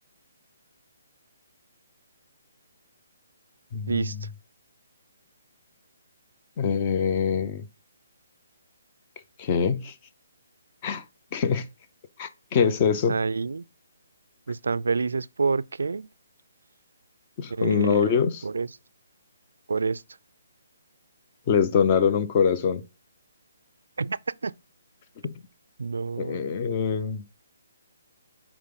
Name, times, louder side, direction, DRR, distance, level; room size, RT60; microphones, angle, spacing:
voice 1, 3.7-4.2 6.6-7.7 9.4-9.9 10.8-11.0 11.3-11.7 12.2-13.2 17.4-18.4 21.5-22.8 25.2-25.3 26.2-27.2, left 6 dB, 25° left, 0.6 m, -24 dB
voice 2, 13.1-13.6 14.5-16.1 17.5-18.2 18.4-18.7 19.7-20.0 24.0-24.5 25.8-26.5, right 4 dB, 90° right, 0.4 m, -28 dB
7.3 x 4.8 x 3.7 m
hypercardioid pair, 170°, 0 cm